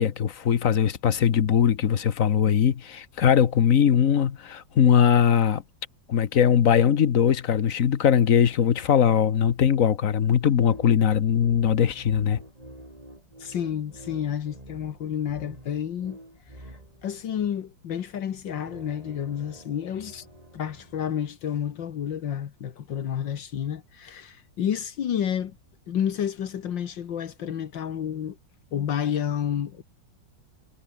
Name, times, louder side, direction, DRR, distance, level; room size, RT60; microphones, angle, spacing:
voice 1, 0.0-5.6 6.1-12.4, left 8 dB, 50° left, 1.3 m, -20 dB
sound 1, 10.4-17.2 18.3-21.1, right 1 dB, 20° right, 7.0 m, -48 dB
voice 2, 13.4-16.2 17.0-20.1 20.5-25.6 25.9-28.4 28.7-29.8, left 9 dB, 70° left, 2.0 m, -30 dB
omnidirectional pair, 2.1 m